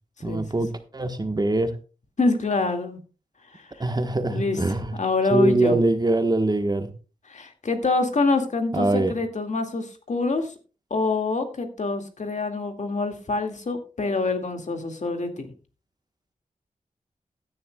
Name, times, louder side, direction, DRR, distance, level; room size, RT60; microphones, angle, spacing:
voice 1, 0.2-1.7 3.8-4.9 5.3-6.9 8.7-9.1, right 2 dB, 30° right, 8 dB, 1.3 m, -23 dB
voice 2, 2.2-3.0 3.5-3.7 4.3-5.8 7.3-10.5 10.9-15.5, left 3 dB, 60° left, 5 dB, 2.1 m, -26 dB
16.0 x 10.5 x 2.3 m, 0.34 s
wide cardioid pair, 100°, 14 cm